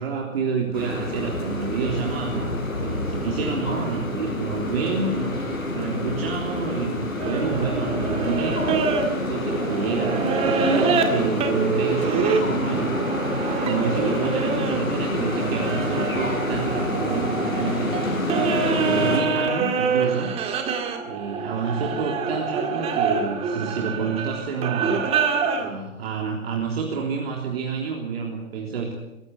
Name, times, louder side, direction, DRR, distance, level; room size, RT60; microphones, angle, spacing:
voice 1, 0.0-9.0 9.3-13.0 13.3-18.0 18.4-20.3 21.0-25.1 25.6-29.0, right 5 dB, 45° right, 0 dB, 3.5 m, -29 dB
sound 1, 0.7-19.2, left 1 dB, 70° left, 7.4 m, -27 dB
sound 2, 7.2-14.8 15.2-25.7, right 5 dB, 15° right, 2.1 m, -26 dB
23.5 x 16.5 x 7.9 m, 0.96 s
figure-of-eight pair, 130°, 41 cm